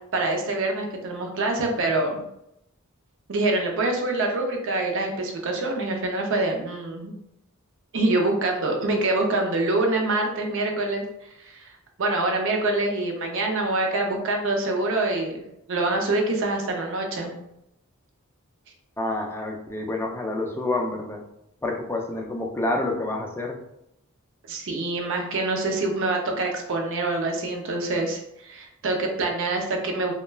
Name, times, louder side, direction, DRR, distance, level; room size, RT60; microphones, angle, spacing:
voice 1, 0.1-2.2 3.3-7.1 7.9-11.7 12.0-17.3 24.5-30.1, right 2 dB, 60° right, 2 dB, 0.5 m, -25 dB
voice 2, 19.0-21.2 21.6-23.6, left 2 dB, 10° left, 1 dB, 0.3 m, -28 dB
2.2 x 2.1 x 3.2 m, 0.81 s
head